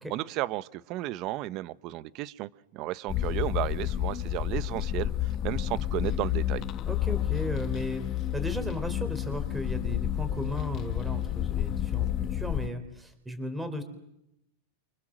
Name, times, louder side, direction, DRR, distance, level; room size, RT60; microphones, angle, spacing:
voice 1, 0.1-6.6, right 16 dB, 40° right, 16 dB, 1.1 m, -33 dB
sound 1, 3.1-12.7, left 12 dB, 35° left, 1.2 m, -30 dB
voice 2, 6.8-8.1 8.3-13.8, equal, 5° right, 8 dB, 4.2 m, -35 dB
28.0 x 26.5 x 7.7 m, 0.81 s
supercardioid pair, 140°, 0 cm